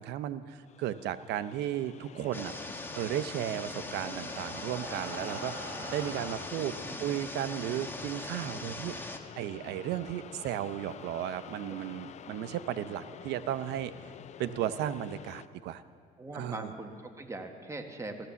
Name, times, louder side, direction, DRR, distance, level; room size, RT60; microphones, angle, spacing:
voice 1, 0.0-2.5 3.0-9.0 9.4-13.9 14.4-15.8 16.3-16.7, right 11 dB, 80° right, 12 dB, 0.7 m, -35 dB
sound 1, 0.7-15.5, left 9 dB, 45° left, 0.5 m, -48 dB
sound 2, 2.3-9.2, left 2 dB, 10° left, 1.3 m, -41 dB
Breathing, 3.7-6.6 7.4-7.5 7.8-7.9 8.4-8.5, right 1 dB, 55° right, 5.0 m, -45 dB
voice 2, 6.8-7.2 16.2-18.3, right 2 dB, 15° right, 4 dB, 1.6 m, -41 dB
15.0 x 13.5 x 7.0 m, 2.1 s
cardioid pair, 110°, 17 cm